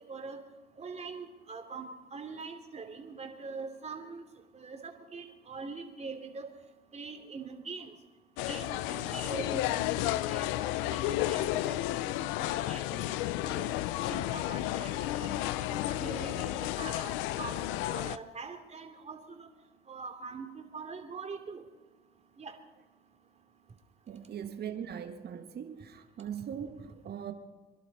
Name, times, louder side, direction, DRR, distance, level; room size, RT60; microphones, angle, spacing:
voice 1, 0.1-0.4 0.8-4.2 4.5-4.8 5.1-6.4 6.9-7.9 8.5-10.6 10.9-13.0 13.5-13.7 14.1-15.4 15.7-17.6 17.9-19.5 19.9-21.6 22.4-22.5, right 4 dB, 35° right, 2.9 m, -43 dB
sound 1, 8.4-18.2, left 15 dB, 90° left, 0.6 m, -32 dB
voice 2, 24.1-27.3, right 8 dB, 55° right, 1.7 m, -40 dB
27.0 x 11.5 x 4.2 m
supercardioid pair, 80°, 19 cm